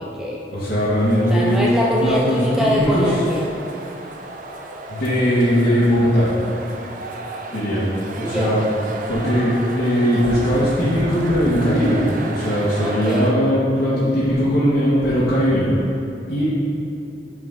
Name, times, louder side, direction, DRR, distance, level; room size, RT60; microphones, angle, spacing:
voice 1, 0.0-0.4 1.3-3.5 8.2-8.6 12.8-13.3, equal, 5° right, -3 dB, 0.4 m, -23 dB
voice 2, 0.5-1.6 2.0-3.1 4.9-6.3 7.5-7.8 8.1-8.7 9.1-15.7 16.3-16.4, equal, 65° left, -11 dB, 1.7 m, -19 dB
sound 1, 1.0-13.3, right 2 dB, 50° right, 0.6 m, -34 dB
9.7 x 4.4 x 3.8 m, 2.8 s
head